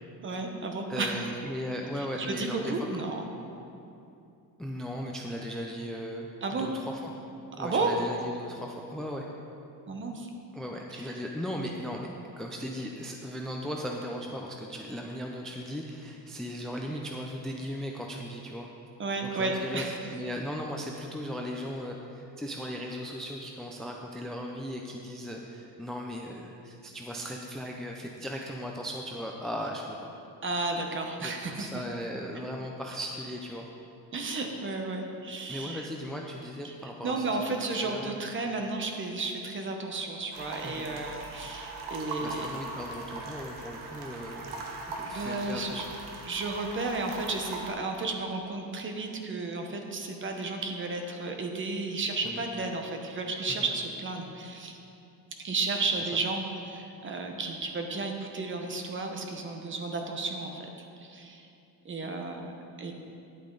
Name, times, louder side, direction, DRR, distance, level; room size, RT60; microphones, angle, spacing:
voice 1, 0.2-1.3 1.9-3.3 6.4-6.7 7.6-8.0 9.9-10.3 10.9-11.1 19.0-20.0 30.4-31.8 34.1-35.9 36.6-42.5 45.1-45.8 46.2-54.8 55.4-60.7 61.0-61.5 61.8-62.9, right 3 dB, 30° right, 3 dB, 0.9 m, -33 dB
voice 2, 0.9-3.0 4.6-7.1 7.6-9.3 10.5-12.1 12.4-18.7 19.2-30.1 31.2-33.7 35.5-37.4 37.7-38.2 40.6-40.9 42.2-44.5 44.9-45.9 52.2-52.4 53.6-53.7, equal, ahead, 0 dB, 0.4 m, -37 dB
sound 1, 40.3-47.7, right 3 dB, 90° right, 1.3 m, -40 dB
10.5 x 8.5 x 3.8 m, 2.7 s
cardioid pair, 145°, 38 cm